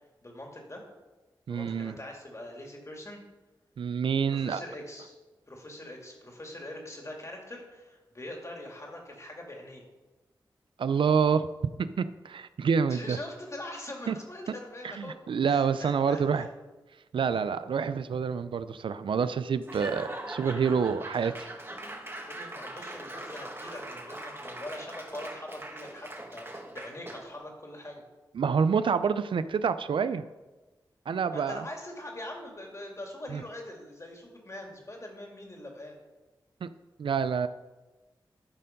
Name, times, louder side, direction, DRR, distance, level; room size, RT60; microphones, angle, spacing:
voice 1, 0.2-0.8 1.5-3.2 4.3-5.1 5.5-9.8 12.9-15.1 15.5-16.7 22.3-28.0 31.3-36.0, left 1 dB, 35° left, 1 dB, 2.4 m, -43 dB
voice 2, 1.5-1.9 3.8-4.6 10.8-11.5 11.8-13.2 14.1-14.2 14.8-16.5 17.1-21.5 28.3-30.2 31.1-31.7 33.3-33.4 36.6-36.7 37.0-37.5, right 6 dB, 80° right, 12 dB, 0.4 m, -27 dB
Laughter / Applause / Crowd, 19.6-27.4, right 1 dB, 25° right, 1.3 m, -41 dB
12.0 x 4.5 x 5.2 m, 1.2 s
cardioid pair, 50°, 9 cm